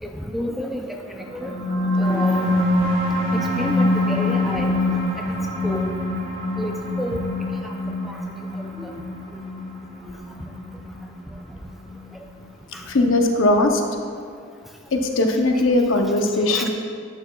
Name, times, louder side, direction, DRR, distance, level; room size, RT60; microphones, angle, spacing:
voice 1, 0.0-1.5 2.0-2.6 3.3-4.8 5.6-5.9 6.6-7.2 7.6-7.7 8.0-8.2 8.8-9.0 12.7-12.9 16.5-16.7, equal, ahead, 2 dB, 0.4 m, -30 dB
sound 1, 1.2-12.2, left 1 dB, 75° right, 1.9 m, -24 dB
voice 2, 12.9-13.8 14.9-16.7, left 2 dB, 65° left, 3 dB, 0.7 m, -19 dB
11.0 x 8.1 x 2.3 m, 2.2 s
head